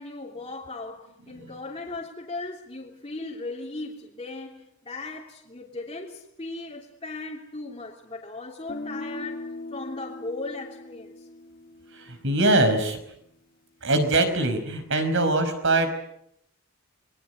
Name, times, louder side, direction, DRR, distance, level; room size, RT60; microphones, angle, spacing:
voice 1, 0.0-11.3, left 2 dB, 25° left, 3.0 m, -37 dB
Guitar, 8.7-12.6, left 1 dB, 40° left, 2.1 m, -40 dB
voice 2, 11.9-13.0 13.8-15.9, right 2 dB, 60° right, 5.0 m, -23 dB
27.5 x 22.0 x 8.0 m
head